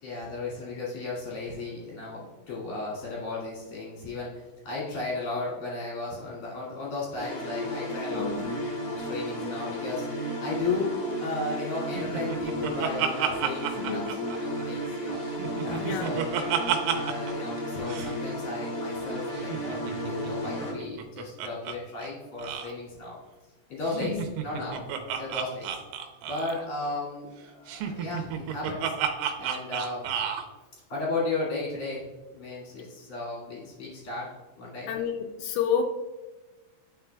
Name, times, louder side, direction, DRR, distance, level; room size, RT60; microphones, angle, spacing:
voice 1, 0.0-4.3 4.6-8.6 8.9-10.9 11.2-15.2 15.6-16.5 16.9-23.2 23.7-24.8 25.2-25.8 26.3-28.9 29.4-30.1 30.9-34.3 34.6-34.9, left 3 dB, 50° left, -7 dB, 1.8 m, -35 dB
sound 1, 7.2-20.7, equal, 70° left, 1.6 m, -33 dB
voice 2, 8.1-8.4 13.8-14.1 15.8-16.2 23.9-24.3 34.9-35.8, left 7 dB, 90° left, 2 dB, 3.3 m, -30 dB
Laughter, 12.0-14.9 15.2-17.3 17.6-17.7 17.9-18.1 19.4-21.8 22.0-22.1 22.4-22.7 23.9-26.7 27.7-30.5, right 9 dB, 80° right, 3.0 m, -31 dB
12.0 x 4.7 x 2.2 m, 1.2 s
omnidirectional pair, 5.9 m